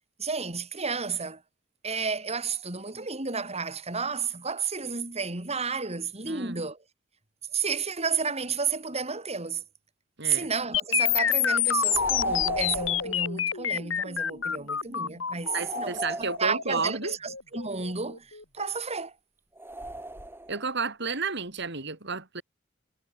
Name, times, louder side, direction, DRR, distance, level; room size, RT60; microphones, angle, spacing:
voice 1, 0.2-1.4 1.8-6.8 7.5-9.6 10.2-19.1, right 5 dB, 35° right, 4.7 m, -31 dB
voice 2, 6.3-6.6 10.2-10.5 15.5-17.1 20.5-22.4, right 4 dB, 60° right, 4.6 m, -32 dB
sound 1, 10.7-18.7, left 9 dB, 85° left, 3.5 m, -28 dB
sound 2, 11.8-13.2 15.4-16.9 19.6-20.7, right 2 dB, 10° right, 6.9 m, -38 dB
head